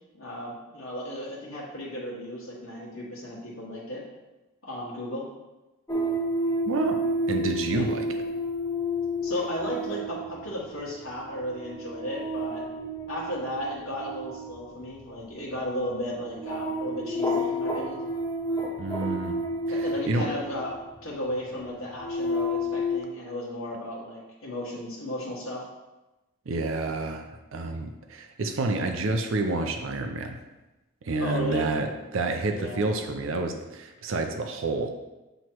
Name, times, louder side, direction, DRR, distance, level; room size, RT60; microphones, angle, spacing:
voice 1, 0.2-4.0 4.6-5.3 7.6-7.9 9.2-12.6 13.1-18.0 19.7-25.6 31.2-31.7 32.5-32.8, equal, 65° left, -6 dB, 1.5 m, -34 dB
sound 1, 5.9-21.0 21.7-23.0, equal, 15° left, 0.6 m, -31 dB
voice 2, 6.7-8.1 18.8-19.4 19.7-20.3 26.5-30.4 31.0-34.9, right 2 dB, 65° right, 5 dB, 0.5 m, -29 dB
7.8 x 3.1 x 4.5 m, 1.1 s
head